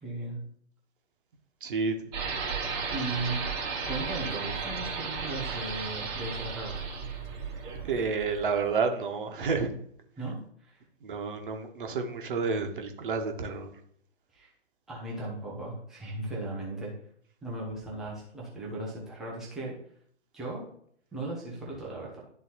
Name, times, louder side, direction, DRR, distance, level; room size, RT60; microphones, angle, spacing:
voice 1, 0.0-0.4 2.9-3.4 3.8-6.7 10.2-10.8 14.3-14.5 14.9-16.9 17.4-19.8 20.3-20.6 21.1-22.2, right 2 dB, ahead, -5 dB, 0.5 m, -37 dB
voice 2, 1.6-1.9 7.9-9.7 11.0-13.7, right 5 dB, 45° right, 5 dB, 1.1 m, -30 dB
sound 1, 2.1-8.8, right 5 dB, 20° right, 1.1 m, -34 dB
11.5 x 3.9 x 2.8 m, 0.66 s
figure-of-eight pair, 125°, 36 cm